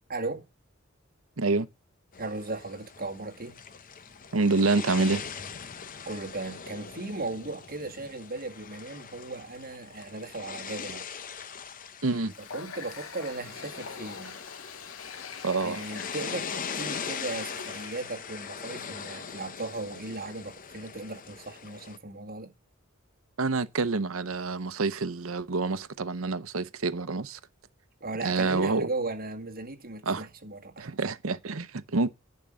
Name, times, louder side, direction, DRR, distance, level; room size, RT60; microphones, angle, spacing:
voice 1, 0.1-0.4 2.2-3.6 6.1-11.1 12.4-14.4 15.6-22.5 28.0-31.0, right 2 dB, 45° right, 2.0 m, -37 dB
voice 2, 1.4-1.7 4.3-5.2 12.0-12.3 15.4-15.8 23.4-27.4 28.2-28.9 30.0-30.3 30.8-32.1, right 3 dB, 85° right, 0.8 m, -27 dB
sound 1, 2.1-22.0, left 6 dB, 40° left, 0.7 m, -41 dB
Water tap faucet, 12.3-18.1, left 6 dB, 80° left, 0.9 m, -44 dB
10.5 x 5.3 x 7.6 m
head